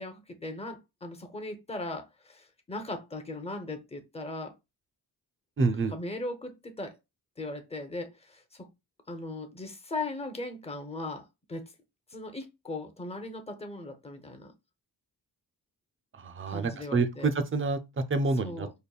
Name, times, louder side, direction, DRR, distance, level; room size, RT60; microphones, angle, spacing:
voice 1, 0.0-4.5 5.9-7.0 7.4-8.7 9.1-11.7 12.1-14.5 16.5-17.3 18.4-18.7, left 2 dB, 15° left, 0.6 m, -38 dB
voice 2, 5.6-5.9 16.2-18.7, right 3 dB, 30° right, 0.5 m, -28 dB
5.2 x 2.2 x 2.3 m
wide cardioid pair, 100°, 43 cm